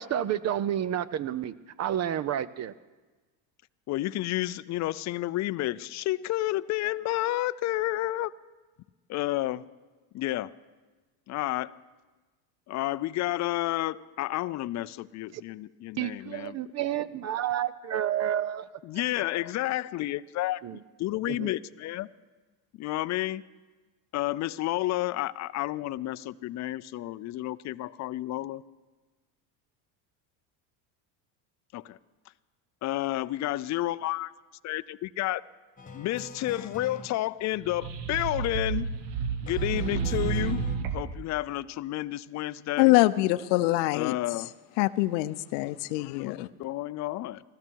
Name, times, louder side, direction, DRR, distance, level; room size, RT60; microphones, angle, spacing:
voice 1, 0.0-2.7 15.3-15.4 16.0-18.7 20.6-20.8 21.3-21.5, right 11 dB, 35° right, 18 dB, 0.4 m, -30 dB
voice 2, 3.9-8.3 9.1-9.6 10.1-10.5 11.3-11.7 12.7-16.6 18.8-20.6 21.0-22.1 22.8-23.4 24.1-28.6 31.7-32.0 32.8-34.3 34.6-35.4 35.9-38.9 39.4-40.6 40.9-42.9 43.9-44.5 46.2-47.4, left 16 dB, 35° left, 17 dB, 0.4 m, -30 dB
sound 1, 35.8-37.1 39.5-40.8, left 4 dB, 15° left, 1.7 m, -43 dB
sound 2, 37.5-41.2, right 6 dB, 60° right, 1.2 m, -31 dB
voice 3, 42.8-44.2 44.8-46.5, left 19 dB, 80° left, 16 dB, 0.7 m, -24 dB
20.0 x 14.0 x 4.6 m, 1.3 s
supercardioid pair, 100°, 50 cm